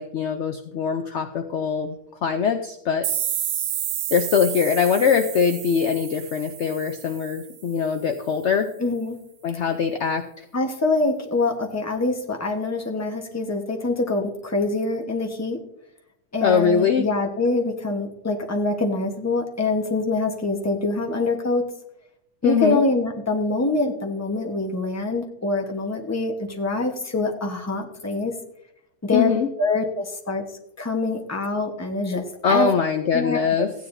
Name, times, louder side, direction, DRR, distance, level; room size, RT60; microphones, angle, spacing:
voice 1, 0.0-2.0 2.2-3.1 4.1-8.7 9.4-10.4 16.4-17.1 22.4-22.8 29.1-29.5 32.4-33.7, left 6 dB, 60° left, 5 dB, 0.8 m, -22 dB
sound 1, 3.0-7.7, right 11 dB, 85° right, 1.3 m, -30 dB
voice 2, 8.8-9.2 10.5-15.6 16.3-21.6 22.4-28.3 29.0-29.3 29.6-30.4 30.8-32.7 33.1-33.4, left 2 dB, 10° left, 2 dB, 1.0 m, -25 dB
15.5 x 9.9 x 2.6 m, 0.79 s
omnidirectional pair, 1.6 m